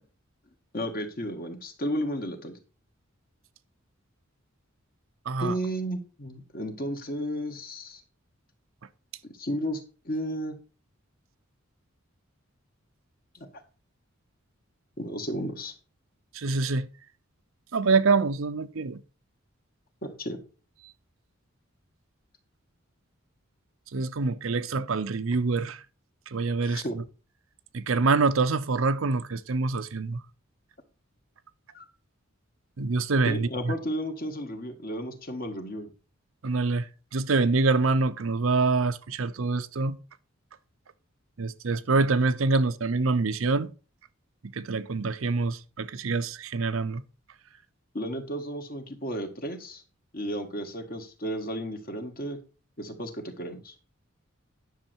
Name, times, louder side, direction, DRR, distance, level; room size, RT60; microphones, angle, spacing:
voice 1, 0.7-2.6 5.4-8.0 9.2-9.8 10.1-10.6 15.0-15.7 20.0-20.4 26.6-27.0 31.7-31.9 33.2-35.9 47.9-49.8 50.1-52.4 52.8-53.7, equal, 45° left, 1.7 m, -33 dB
voice 2, 5.3-5.6 16.3-16.9 17.7-19.0 23.9-25.8 26.3-26.8 27.7-30.2 32.8-33.7 36.4-36.9 37.1-40.0 41.4-43.7 44.6-47.0, right 3 dB, 75° right, 0.7 m, -25 dB
10.0 x 6.5 x 4.5 m
head